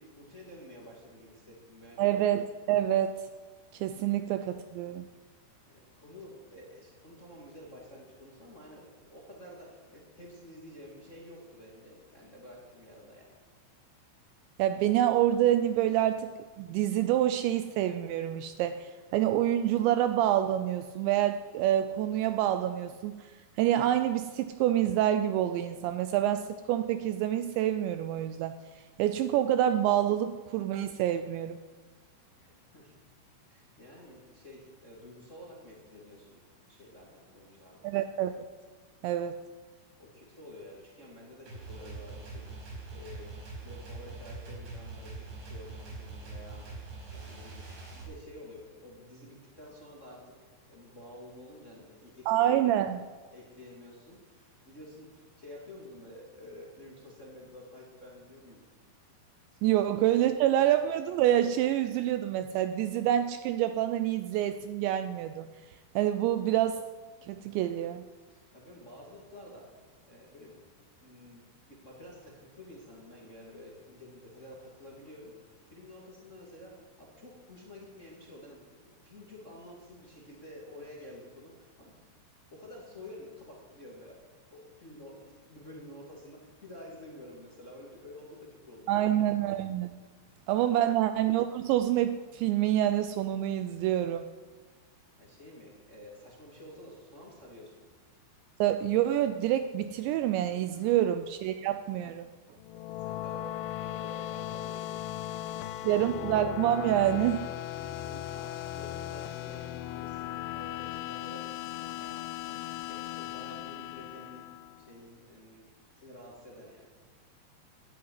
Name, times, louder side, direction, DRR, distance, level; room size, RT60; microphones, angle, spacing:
voice 1, 0.0-2.1 5.7-13.3 32.4-32.9 33.5-36.4 36.7-37.9 39.1-39.2 39.8-42.5 42.9-46.7 47.1-50.2 50.5-52.5 52.9-53.0 53.3-58.7 59.5-59.6 68.3-69.8 70.0-70.5 71.0-82.0 82.5-84.2 84.5-89.1 90.1-90.7 95.2-97.9 100.8-101.0 102.9-106.1 107.7-114.5 114.8-115.6 116.0-116.9, left 1 dB, 25° left, -3 dB, 1.9 m, -50 dB
voice 2, 2.0-3.2 3.7-5.1 14.6-16.3 16.6-23.3 23.6-28.5 29.0-31.6 37.8-38.4 39.0-39.4 52.3-53.1 59.6-65.5 66.0-66.8 67.3-68.1 88.9-90.0 90.5-94.3 98.6-102.3 105.8-107.4, right 12 dB, 80° right, 9 dB, 2.7 m, -27 dB
sound 1, 41.5-48.0, right 3 dB, 65° right, 7.1 m, -43 dB
sound 2, 102.6-115.0, left 13 dB, 90° left, 2.4 m, -38 dB
13.0 x 10.5 x 9.6 m, 1.4 s
omnidirectional pair, 5.5 m